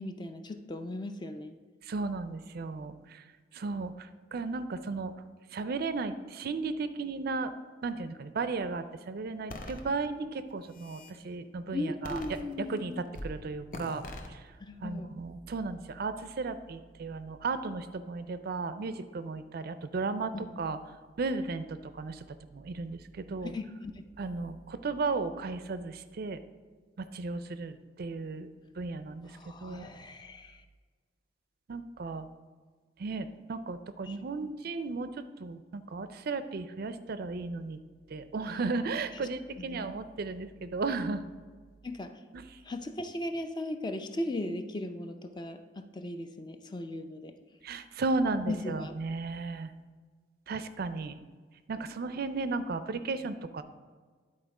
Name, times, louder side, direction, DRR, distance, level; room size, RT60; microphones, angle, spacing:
voice 1, 0.0-1.6 11.7-13.1 14.6-15.1 20.3-20.6 23.4-24.0 29.2-30.6 34.0-34.2 34.4-34.5 39.1-39.3 39.6-40.0 41.8-42.2 42.6-47.4 48.5-49.0, left 1 dB, 25° left, 8 dB, 0.4 m, -38 dB
voice 2, 1.9-3.2 3.5-5.1 5.5-7.5 7.8-12.2 12.6-12.9 13.2-14.0 14.3-14.4 14.8-20.3 20.6-20.8 21.2-22.2 22.5-23.5 24.2-26.4 27.0-28.5 28.8-29.3 29.6-29.9 31.7-32.3 33.0-37.8 38.1-41.2 42.3-42.4 47.6-49.7 50.5-51.1 51.7-53.6, right 3 dB, 55° right, 11 dB, 0.4 m, -35 dB
sound 1, 9.5-9.8 10.5-11.2 12.0-12.8 13.1-13.4 13.7-14.3, left 1 dB, 45° left, 0.8 m, -41 dB
10.5 x 4.2 x 4.8 m, 1.5 s
head